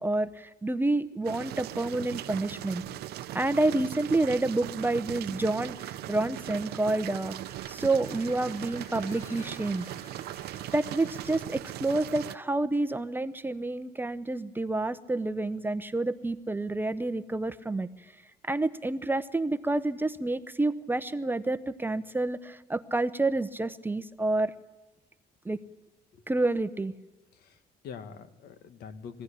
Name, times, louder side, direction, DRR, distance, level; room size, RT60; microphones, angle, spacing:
voice 1, 0.0-2.8 3.3-7.3 7.7-9.9 10.7-17.9 18.4-24.5 25.4-25.6 26.3-26.9, right 2 dB, 10° right, 12 dB, 0.8 m, -29 dB
sound 1, 1.2-12.4, right 14 dB, 70° right, 0.7 m, -39 dB
sound 2, 2.1-11.5, left 3 dB, 45° left, 5.0 m, -57 dB
sound 3, 8.7-9.8, left 1 dB, 15° left, 5.0 m, -52 dB
voice 2, 27.3-29.2, left 6 dB, 70° left, 9 dB, 1.8 m, -45 dB
22.5 x 16.0 x 10.0 m, 1.1 s
cardioid pair, 110°, 17 cm